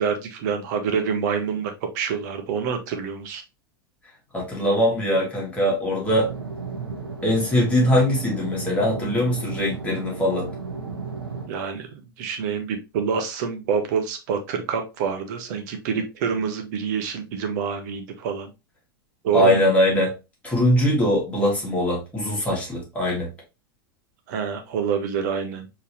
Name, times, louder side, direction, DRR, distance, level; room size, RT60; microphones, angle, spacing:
voice 1, 0.0-3.4 11.5-18.5 19.2-19.6 24.3-25.8, right 6 dB, 50° right, 1.0 m, -27 dB
voice 2, 4.3-6.3 7.2-10.5 19.3-20.1 20.4-23.3, equal, 10° left, 2.3 m, -21 dB
sound 1, 6.1-11.5, right 4 dB, 75° right, 0.8 m, -34 dB
4.5 x 3.2 x 3.1 m
figure-of-eight pair, 90°, 12 cm